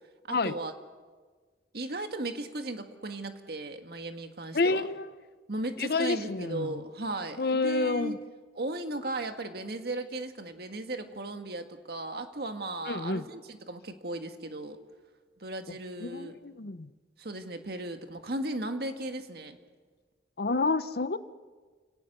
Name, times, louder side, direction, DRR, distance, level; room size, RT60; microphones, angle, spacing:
voice 1, 0.3-0.7 1.7-4.9 5.5-8.2 8.6-14.8 15.4-16.4 17.2-19.6, right 2 dB, 65° right, 7 dB, 1.7 m, -36 dB
voice 2, 4.5-5.1 5.8-6.7 7.4-8.2 12.9-13.2 16.0-16.9 20.4-21.2, left 3 dB, 60° left, 14 dB, 0.8 m, -29 dB
30.0 x 18.0 x 6.8 m, 1.5 s
head